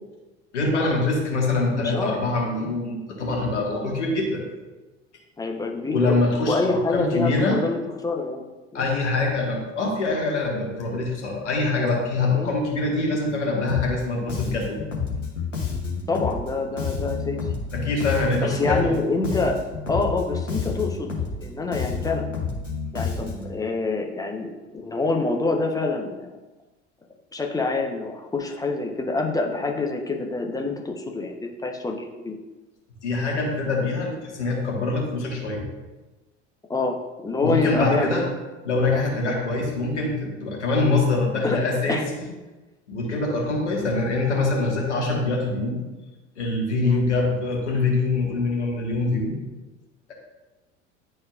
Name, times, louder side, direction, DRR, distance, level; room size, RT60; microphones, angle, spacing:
voice 1, 0.5-4.4 5.9-7.6 8.7-14.8 17.7-18.9 33.0-35.6 37.4-38.2 38.6-42.2 42.9-45.8 46.4-49.4, left 3 dB, 70° left, 0 dB, 1.6 m, -24 dB
voice 2, 1.7-2.1 2.6-2.7 5.4-6.2 6.4-8.8 12.3-12.5 16.1-17.4 18.4-19.6 19.9-22.3 22.9-26.3 27.3-32.3 36.7-37.0 37.2-38.3 38.9-39.0 41.4-41.6 41.9-42.0 46.8-47.0, left 3 dB, 10° left, 1 dB, 0.8 m, -26 dB
Bass guitar, 13.7-14.0 14.3-19.0 19.2-23.6, left 5 dB, 85° left, 1.2 m, -30 dB
10.5 x 4.3 x 2.4 m, 1.2 s
figure-of-eight pair, 70°, 36 cm